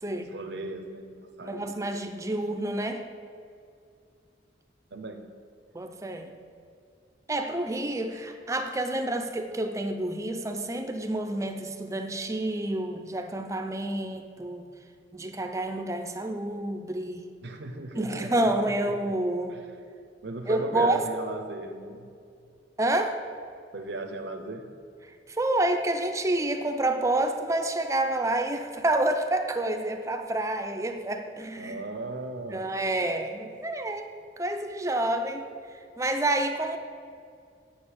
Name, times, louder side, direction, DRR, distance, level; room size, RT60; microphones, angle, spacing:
voice 1, 0.0-1.8 4.9-5.2 17.4-19.2 19.5-19.7 20.2-22.1 23.7-24.7 31.6-33.2, right 2 dB, 80° right, 5 dB, 0.7 m, -37 dB
voice 2, 1.4-3.0 5.7-6.3 7.3-14.7 15.1-17.3 17.9-19.6 20.5-21.0 22.8-23.2 25.3-31.8 32.5-35.5 36.0-36.8, right 1 dB, 15° right, 6 dB, 0.5 m, -28 dB
7.7 x 6.6 x 7.0 m, 2.4 s
head